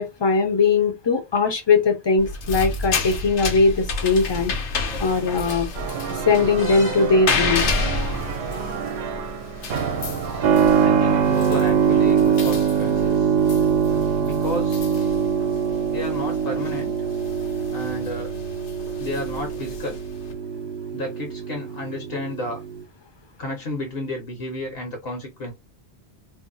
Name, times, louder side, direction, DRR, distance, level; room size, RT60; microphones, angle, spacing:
voice 1, 0.0-4.5 5.0-5.7 6.3-7.7, left 4 dB, 35° left, 0.5 m, -20 dB
sound 1, 2.2-20.3, left 4 dB, 85° left, 1.0 m, -31 dB
sound 2, 5.7-11.2, right 6 dB, 75° right, 0.8 m, -30 dB
Keyboard (musical), 10.4-22.8, right 7 dB, 55° right, 0.5 m, -22 dB
voice 2, 10.8-13.3 14.2-14.9 15.9-16.9 17.7-18.3 19.0-20.0 20.9-22.6 23.4-25.5, left 1 dB, 65° left, 1.1 m, -32 dB
2.6 x 2.1 x 3.9 m
omnidirectional pair, 1.1 m